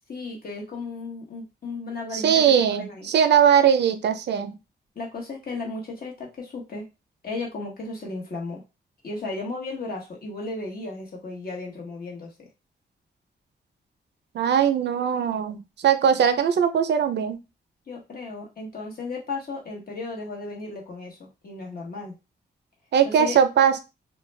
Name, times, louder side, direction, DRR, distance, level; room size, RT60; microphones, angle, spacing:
voice 1, 0.1-3.1 4.9-6.9 7.2-8.6 9.0-12.5 17.9-22.1 23.0-23.4, left 3 dB, 55° left, -1 dB, 1.0 m, -35 dB
voice 2, 2.1-4.6 14.3-17.4 22.9-23.8, right 8 dB, 75° right, 9 dB, 0.4 m, -20 dB
2.3 x 2.1 x 3.2 m, 0.26 s
cardioid pair, 90°, 18 cm